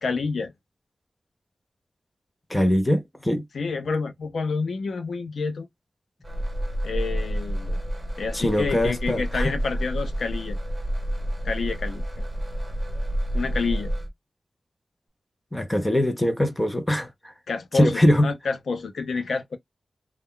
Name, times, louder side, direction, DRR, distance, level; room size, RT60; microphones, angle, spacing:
voice 1, 0.0-0.5 3.5-5.7 6.8-7.8 8.2-10.6 11.4-12.2 13.3-13.9 17.5-19.6, left 4 dB, 90° left, 0.5 m, -29 dB
voice 2, 2.5-3.4 8.3-9.5 15.5-17.1 17.7-18.3, left 1 dB, 10° left, 0.5 m, -22 dB
sound 1, 6.2-14.1, equal, 15° right, 0.8 m, -29 dB
2.2 x 2.1 x 3.6 m
wide cardioid pair, 120°, 0 cm